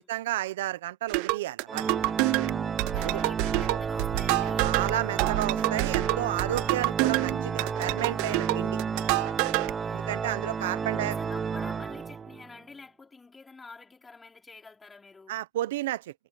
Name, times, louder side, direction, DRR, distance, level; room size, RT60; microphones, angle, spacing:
voice 1, 0.0-1.8 3.0-3.2 4.6-8.8 9.9-11.1 15.3-16.1, right 14 dB, 85° right, 1.0 m, -32 dB
sound 1, 1.1-9.7, right 27 dB, 70° right, 0.5 m, -28 dB
Organ, 1.7-12.5, right 6 dB, 25° right, 0.8 m, -32 dB
voice 2, 2.9-4.7 6.7-6.9 7.1-7.3 9.8-10.2 10.8-15.4, left 4 dB, 20° left, 4.8 m, -48 dB
supercardioid pair, 95°, 0 cm